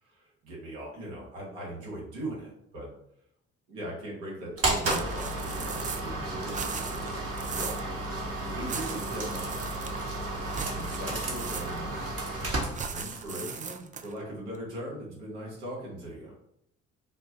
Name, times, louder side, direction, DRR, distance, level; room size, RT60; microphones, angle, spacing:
voice 1, 0.0-2.9 3.7-7.1 7.4-9.6 10.7-12.0 12.9-16.3, right 1 dB, 85° right, -4 dB, 1.3 m, -40 dB
sound 1, 4.6-13.3, right 2 dB, 45° right, 1.2 m, -33 dB
sound 2, 4.8-6.2 6.4-7.9 8.6-10.1 10.5-12.0 12.7-14.2, right 6 dB, 25° right, 0.3 m, -38 dB
3.8 x 2.2 x 2.8 m, 0.77 s
hypercardioid pair, 50°, 35 cm